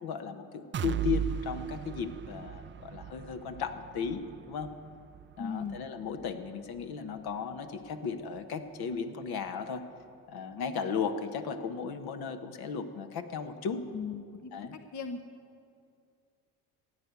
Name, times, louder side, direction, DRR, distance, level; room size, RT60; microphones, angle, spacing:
voice 1, 0.0-4.8 5.4-9.8 10.3-13.9 14.5-14.8, left 6 dB, 60° left, 7 dB, 1.3 m, -35 dB
sound 1, 0.7-8.5 8.9-9.0 9.5-9.6, right 9 dB, 30° right, 0.5 m, -39 dB
voice 2, 5.4-5.8 13.9-15.2, left 6 dB, 40° left, 7 dB, 1.0 m, -38 dB
16.0 x 9.1 x 8.2 m, 2.3 s
supercardioid pair, 75°, 43 cm